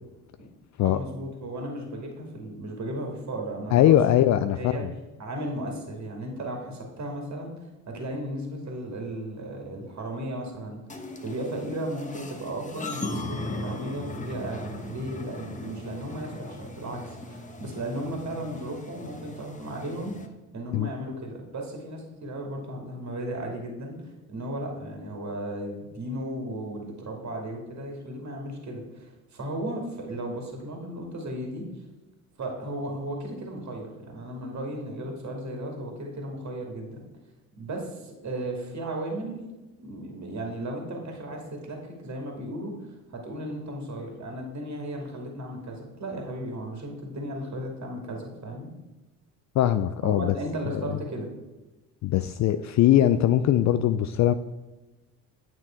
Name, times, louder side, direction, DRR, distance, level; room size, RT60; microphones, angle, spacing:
voice 1, 0.8-4.2 4.5-4.8 5.2-10.8 11.2-20.1 20.5-24.0 24.3-31.6 32.4-37.0 37.6-39.4 39.8-48.7 50.0-51.3, right 1 dB, 40° right, 1 dB, 2.4 m, -35 dB
voice 2, 3.7-4.9 20.7-20.9 49.6-50.3 50.7-50.8 52.0-54.3, left 12 dB, 45° left, 11 dB, 0.4 m, -21 dB
sound 1, 10.9-20.3, left 2 dB, 20° left, 1.1 m, -38 dB
9.2 x 6.1 x 4.5 m, 1.1 s
hypercardioid pair, 60°, 42 cm